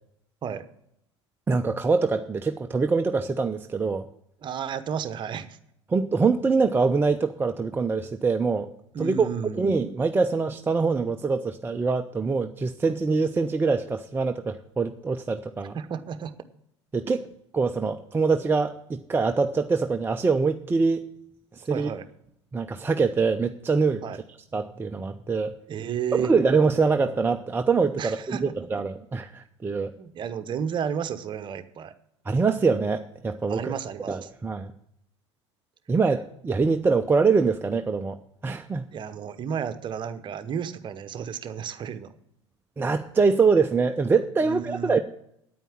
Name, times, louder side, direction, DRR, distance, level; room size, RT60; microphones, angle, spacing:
voice 1, 1.5-4.1 5.9-8.7 9.0-9.3 9.5-15.8 16.9-17.2 17.5-21.0 21.5-21.9 22.5-24.2 24.5-25.5 26.2-29.9 32.3-33.8 34.1-34.7 35.9-38.2 38.4-38.8 42.8-45.0, right 4 dB, 15° right, 6 dB, 0.5 m, -24 dB
voice 2, 4.4-5.6 8.9-9.8 15.7-16.3 21.7-22.0 24.0-24.2 25.7-26.3 28.0-28.5 30.0-31.9 33.5-34.3 38.9-42.1 44.4-45.0, right 7 dB, 30° right, 11 dB, 1.0 m, -32 dB
9.5 x 9.0 x 7.4 m, 0.75 s
figure-of-eight pair, 75°, 15 cm